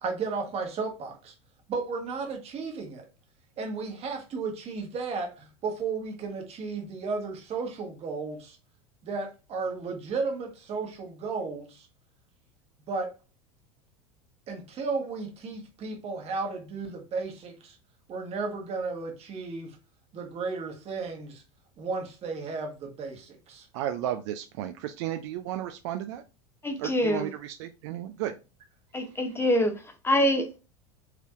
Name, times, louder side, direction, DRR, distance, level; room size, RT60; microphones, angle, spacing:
voice 1, 0.0-1.3 1.7-3.1 3.6-8.6 9.0-11.9 12.9-13.1 14.5-17.8 18.1-19.8 20.1-21.4 21.8-23.7, right 4 dB, 35° right, 1.3 m, -34 dB
voice 2, 23.7-26.2 26.8-28.3, right 12 dB, 55° right, 0.4 m, -33 dB
voice 3, 26.6-27.3 28.9-29.7 30.0-30.5, left 1 dB, 15° left, 0.7 m, -24 dB
4.6 x 3.3 x 2.4 m
figure-of-eight pair, 80°, 18 cm